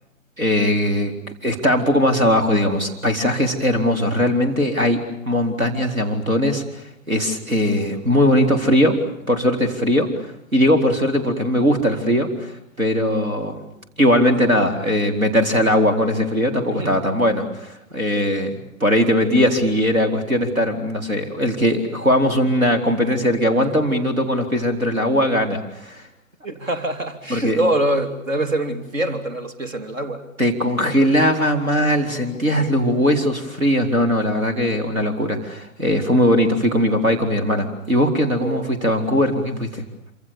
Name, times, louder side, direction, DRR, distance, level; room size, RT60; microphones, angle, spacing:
voice 1, 0.4-1.1 1.4-6.6 7.1-9.0 9.3-13.6 14.0-18.5 18.8-26.0 27.3-27.6 30.4-39.8, equal, 85° right, 5 dB, 4.5 m, -19 dB
voice 2, 16.7-17.1 26.4-30.3 38.4-38.7, right 1 dB, 70° right, 8 dB, 3.2 m, -24 dB
27.0 x 26.5 x 7.1 m, 0.80 s
figure-of-eight pair, 120°, 40 cm